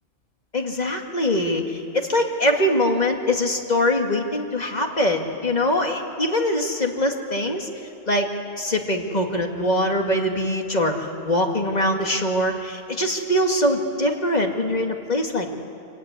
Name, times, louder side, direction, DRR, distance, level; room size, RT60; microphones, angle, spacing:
voice 1, 0.5-7.7 8.1-8.3 8.6-15.6, left 1 dB, 35° left, 2 dB, 2.3 m, -23 dB
27.0 x 16.0 x 9.8 m, 2.5 s
omnidirectional pair, 1.2 m